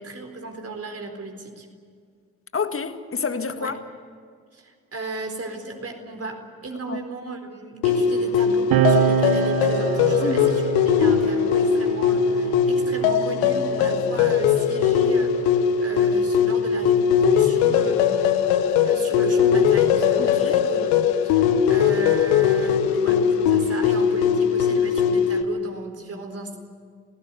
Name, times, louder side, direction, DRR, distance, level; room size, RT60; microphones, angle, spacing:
voice 1, 0.0-1.7 3.6-3.8 4.5-18.1 18.8-20.9 21.2-26.6, right 3 dB, 35° right, 4.3 m, -35 dB
voice 2, 2.5-3.8 6.9-7.1 10.2-10.5 20.2-20.6, left 5 dB, 30° left, 1.9 m, -28 dB
sound 1, 7.8-25.4, left 7 dB, 65° left, 1.3 m, -20 dB
sound 2, 8.7-15.6 16.6-18.4, right 8 dB, 55° right, 1.6 m, -27 dB
29.5 x 18.5 x 7.1 m
figure-of-eight pair, 40°, 43 cm